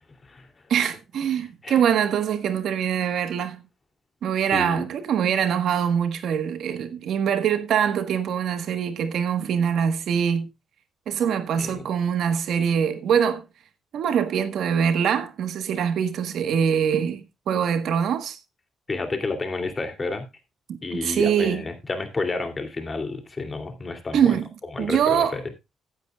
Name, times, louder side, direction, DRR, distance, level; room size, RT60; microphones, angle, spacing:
voice 1, 0.7-3.6 4.2-10.5 11.1-13.4 13.9-18.4 20.7-21.6 24.1-24.5 24.8-25.3, right 8 dB, 70° right, 1.3 m, -23 dB
voice 2, 4.5-4.9 11.6-11.8 18.9-20.3 20.8-24.4 24.7-25.4, left 3 dB, 30° left, 2.8 m, -30 dB
15.5 x 9.3 x 2.3 m
cardioid pair, 90°, 0 cm